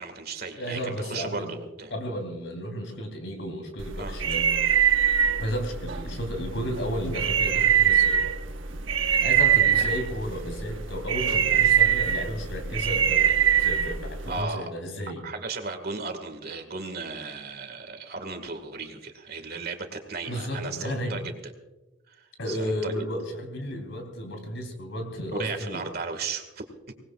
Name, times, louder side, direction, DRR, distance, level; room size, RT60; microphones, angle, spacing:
voice 1, 0.0-1.9 4.0-4.1 9.8-9.9 14.3-14.7 15.2-21.5 22.1-22.9 25.4-26.6, right 4 dB, 55° right, 7 dB, 2.0 m, -35 dB
voice 2, 0.6-1.5 1.9-4.5 5.4-8.3 9.0-15.2 20.3-21.2 22.4-25.9, equal, 70° left, 4 dB, 3.4 m, -33 dB
sound 1, 3.8-14.4, right 8 dB, 80° right, 1.2 m, -23 dB
24.5 x 19.5 x 2.5 m, 1.0 s
head